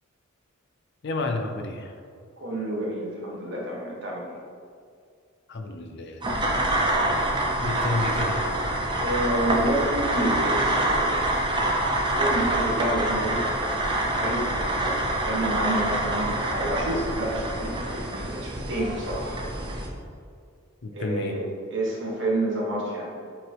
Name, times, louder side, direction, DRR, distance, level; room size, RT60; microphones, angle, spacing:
voice 1, 1.0-1.9 5.5-7.0 7.6-8.5 20.8-21.4, left 2 dB, 55° left, 4 dB, 0.5 m, -31 dB
voice 2, 2.4-4.3 9.0-11.4 12.2-13.4 14.1-19.4 20.9-21.4 21.7-23.1, right 1 dB, 60° right, -3 dB, 1.4 m, -29 dB
sound 1, 6.2-19.9, right 1 dB, 20° right, 0.7 m, -26 dB
7.8 x 4.4 x 3.0 m, 2.3 s
head